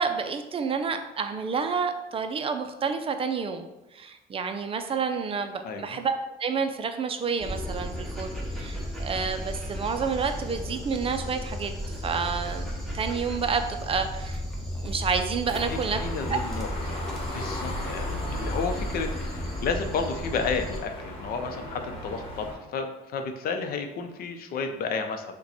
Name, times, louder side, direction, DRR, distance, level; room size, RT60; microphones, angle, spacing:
voice 1, 0.0-3.7 3.9-8.3 8.6-12.7 12.9-14.4 14.8-16.0 16.3-16.4, right 5 dB, 35° right, 7 dB, 0.4 m, -29 dB
voice 2, 5.6-6.0 15.6-25.4, left 4 dB, 60° left, 6 dB, 0.6 m, -32 dB
Dog, 7.4-20.8, equal, ahead, 1.1 m, -34 dB
sound 1, 15.5-22.5, left 1 dB, 35° left, 1.3 m, -37 dB
5.6 x 2.2 x 4.1 m, 0.99 s
cardioid pair, 110°, 17 cm